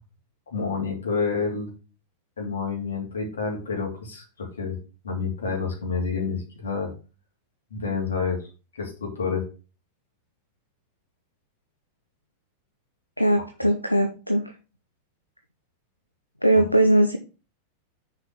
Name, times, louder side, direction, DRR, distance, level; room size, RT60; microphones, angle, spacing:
voice 1, 0.5-1.7 2.4-4.8 5.0-6.9 7.7-8.4 8.7-9.4 16.5-16.6, left 5 dB, 70° left, 1 dB, 3.0 m, -28 dB
voice 2, 13.2-14.5 16.4-17.2, right 1 dB, 90° left, 6 dB, 0.6 m, -20 dB
6.5 x 4.9 x 5.8 m, 0.33 s
figure-of-eight pair, 90°, 0 cm